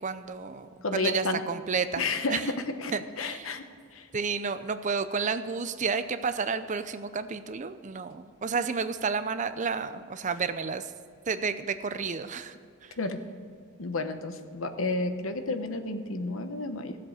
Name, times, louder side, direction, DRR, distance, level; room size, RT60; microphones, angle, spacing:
voice 1, 0.0-2.0 2.3-2.5 2.9-3.5 4.1-10.9 11.3-12.9, right 5 dB, 35° right, 11 dB, 0.5 m, -31 dB
voice 2, 0.8-1.4 2.0-2.5 2.8-3.6 3.9-4.1 13.0-13.2 13.8-17.0, left 3 dB, 70° left, 8 dB, 1.0 m, -31 dB
15.5 x 7.6 x 6.5 m, 2.3 s
head